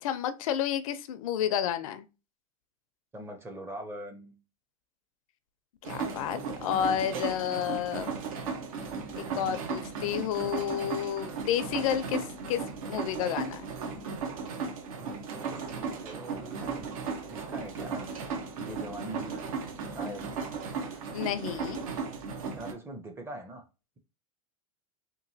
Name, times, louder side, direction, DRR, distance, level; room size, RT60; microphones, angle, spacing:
voice 1, 0.0-2.0 5.8-8.1 9.2-12.6 12.9-13.7 21.1-21.8, left 10 dB, 70° left, 0.5 m, -31 dB
voice 2, 3.1-4.4 5.9-6.5 9.2-9.7 14.9-16.9 17.2-18.1 18.5-19.6 19.9-20.3 22.6-23.6, right 1 dB, 15° right, 0.5 m, -43 dB
sound 1, 5.8-22.7, right 5 dB, 75° right, 0.9 m, -36 dB
3.0 x 2.6 x 2.7 m
supercardioid pair, 135°, 18 cm